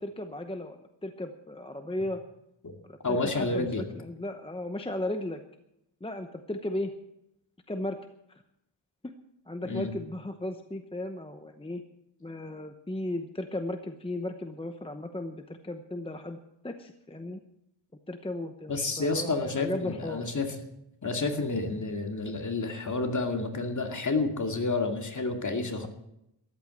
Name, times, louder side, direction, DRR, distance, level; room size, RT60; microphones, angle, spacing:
voice 1, 0.0-2.2 2.9-5.4 6.0-6.9 7.7-8.0 8.3-8.4 9.5-11.8 12.2-16.4 16.6-17.4 18.1-20.3, left 1 dB, 10° left, 6 dB, 0.9 m, -36 dB
voice 2, 3.0-3.8 9.7-9.9 18.7-20.5 21.0-25.9, left 3 dB, 40° left, 4 dB, 2.3 m, -30 dB
14.0 x 11.5 x 7.7 m, 0.81 s
wide cardioid pair, 135°, 47 cm